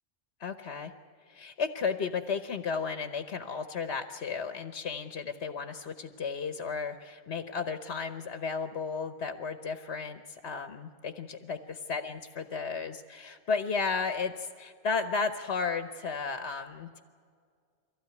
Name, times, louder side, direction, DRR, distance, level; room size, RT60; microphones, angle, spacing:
voice 1, 0.4-0.9 1.3-17.0, left 5 dB, 75° left, 8 dB, 1.2 m, -34 dB
23.5 x 16.5 x 9.4 m, 2.1 s
omnidirectional pair, 1.1 m